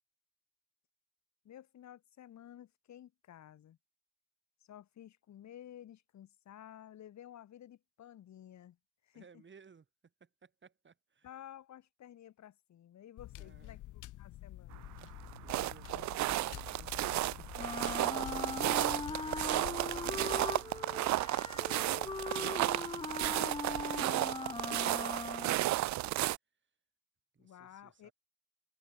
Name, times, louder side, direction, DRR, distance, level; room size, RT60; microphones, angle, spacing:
voice 1, 1.4-3.8 4.7-8.8 9.0-9.4 11.2-14.9 27.4-28.1, left 11 dB, 65° left, 2.6 m, -53 dB
voice 2, 9.1-9.9 10.2-11.3 13.3-13.8 15.1-26.1 27.3-28.1, right 5 dB, 40° right, 6.4 m, -60 dB
sound 1, 13.2-20.5, left 15 dB, 85° left, 2.2 m, -49 dB
sound 2, 14.7-26.4, right 16 dB, 65° right, 0.5 m, -33 dB
Wind instrument woodwind instrument, 17.6-25.7, left 3 dB, 15° left, 1.0 m, -40 dB
cardioid pair, 90°, 30 cm